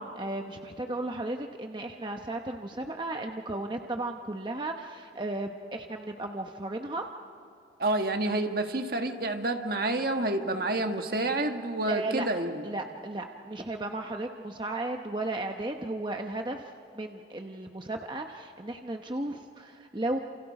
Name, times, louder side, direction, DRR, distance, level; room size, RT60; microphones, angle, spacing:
voice 1, 0.0-7.1 11.9-12.3 12.6-20.2, right 2 dB, 25° right, 4 dB, 0.9 m, -35 dB
voice 2, 7.8-12.6, right 2 dB, 55° right, 5 dB, 1.6 m, -29 dB
28.5 x 28.0 x 4.9 m, 2.5 s
head